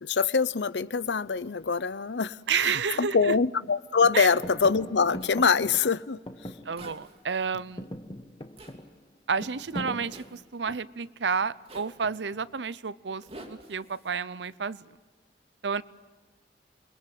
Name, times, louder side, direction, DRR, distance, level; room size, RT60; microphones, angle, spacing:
voice 1, 0.0-6.2, left 5 dB, 85° left, 0.7 m, -24 dB
voice 2, 2.5-3.4 4.1-4.3 6.6-7.9 9.3-14.9 15.6-15.8, right 6 dB, 90° right, 0.7 m, -30 dB
sound 1, 2.6-2.7 3.2-3.7 4.0-7.2 7.5-11.1 12.0-12.5, equal, 25° left, 1.2 m, -41 dB
Zipper (clothing), 5.2-5.4 6.8-7.2 8.6-8.8 10.1-10.4 11.7-12.0 13.2-14.1, right 1 dB, 35° right, 2.9 m, -47 dB
28.5 x 22.0 x 7.7 m
head